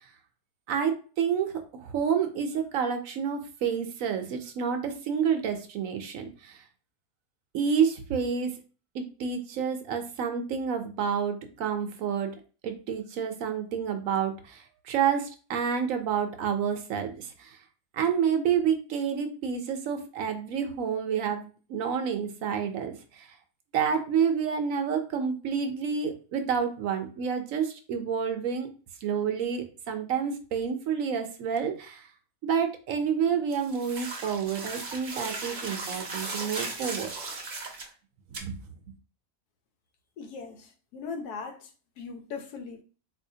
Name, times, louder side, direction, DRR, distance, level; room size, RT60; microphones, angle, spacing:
voice 1, 0.7-6.6 7.5-8.6 8.9-12.3 12.6-17.6 17.9-23.3 23.7-28.7 29.0-32.1 32.4-37.1 38.4-38.6, right 7 dB, 70° right, 0.9 m, -29 dB
sound 1, 33.5-37.9 38.3-38.4, right 3 dB, 45° right, 0.7 m, -36 dB
voice 2, 40.2-41.7 42.0-42.8, left 5 dB, 85° left, 1.2 m, -39 dB
4.3 x 2.7 x 2.7 m
omnidirectional pair, 1.6 m